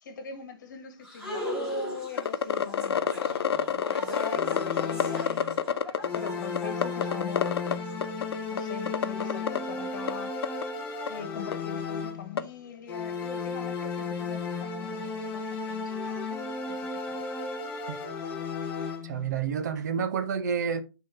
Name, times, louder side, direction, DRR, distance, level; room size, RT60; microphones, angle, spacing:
voice 1, 0.0-5.4 6.1-7.8 8.5-16.3 16.7-17.2, left 5 dB, 50° left, 1.6 m, -41 dB
sound 1, 1.0-7.9, equal, 5° right, 1.5 m, -40 dB
sound 2, 2.2-6.3 6.6-7.7 8.0-8.6 8.9-9.6 10.1-10.2 10.4-10.6 11.1-11.2 11.5-11.6 12.4-12.5, left 7 dB, 85° left, 0.8 m, -27 dB
sound 3, 4.1-5.6 6.0-12.5 12.9-19.3, left 4 dB, 15° left, 0.8 m, -34 dB
voice 2, 19.0-20.8, right 7 dB, 45° right, 0.8 m, -29 dB
9.3 x 3.7 x 4.3 m
hypercardioid pair, 175°, 13 cm